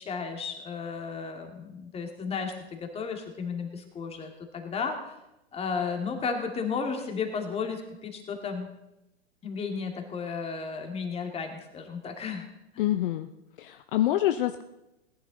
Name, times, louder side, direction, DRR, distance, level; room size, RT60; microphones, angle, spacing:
voice 1, 0.0-5.1 5.5-8.7 9.4-12.5 12.7-12.9, left 5 dB, 20° left, 4 dB, 2.2 m, -34 dB
voice 2, 12.8-13.3 13.6-14.6, left 13 dB, 55° left, 9 dB, 0.7 m, -26 dB
18.5 x 10.5 x 3.9 m, 0.93 s
hypercardioid pair, 120°, 32 cm